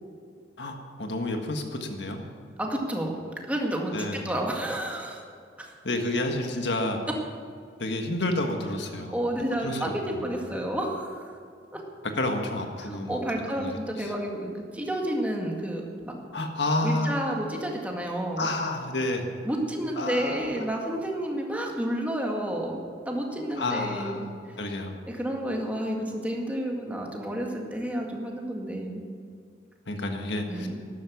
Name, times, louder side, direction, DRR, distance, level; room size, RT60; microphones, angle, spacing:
voice 1, 0.6-2.2 3.9-4.3 5.8-7.0 7.8-9.1 9.6-9.8 10.1-10.3 12.2-13.2 13.6-13.7 14.0-14.1 16.3-17.2 18.4-19.3 20.0-20.5 23.5-24.3 24.6-25.0 29.9-30.7, left 2 dB, 70° left, 4 dB, 1.6 m, -29 dB
voice 2, 2.6-3.1 3.5-5.2 5.6-5.7 9.1-11.3 11.7-11.8 12.8-16.1 16.8-18.5 19.5-22.8 23.1-24.3 25.1-29.0 30.5-30.8, right 1 dB, 10° right, 0 dB, 2.0 m, -30 dB
12.5 x 12.0 x 7.2 m, 2.3 s
head